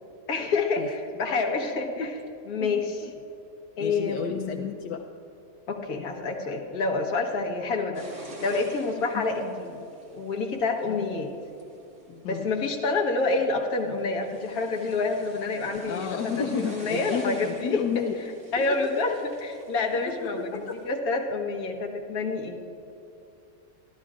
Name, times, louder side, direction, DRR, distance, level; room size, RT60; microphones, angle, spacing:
voice 1, 0.3-2.1 2.5-3.0 3.8-4.7 5.7-9.8 10.1-11.3 12.1-17.8 18.5-22.6, left 3 dB, 55° left, 1 dB, 1.7 m, -28 dB
voice 2, 2.6-3.1 3.8-5.0 9.1-9.2 10.9-11.0 12.2-12.5 15.8-18.8 20.2-20.8, left 6 dB, 75° left, 2 dB, 1.3 m, -32 dB
sound 1, 7.9-20.9, right 1 dB, 45° right, 2.5 m, -47 dB
28.0 x 12.0 x 2.5 m, 2.8 s
omnidirectional pair, 1.9 m